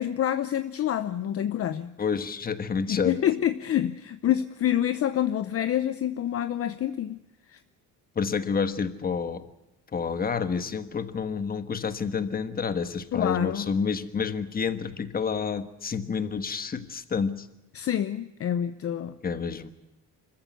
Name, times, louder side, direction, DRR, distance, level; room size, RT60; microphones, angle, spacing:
voice 1, 0.0-1.9 2.9-7.2 7.5-7.6 13.1-13.7 17.7-19.1, left 11 dB, 45° left, 12 dB, 0.8 m, -27 dB
voice 2, 2.0-3.2 8.1-9.5 9.9-17.5 19.2-19.7, left 6 dB, 30° left, 11 dB, 1.4 m, -29 dB
25.5 x 15.0 x 9.2 m, 0.98 s
cardioid pair, 145°, 32 cm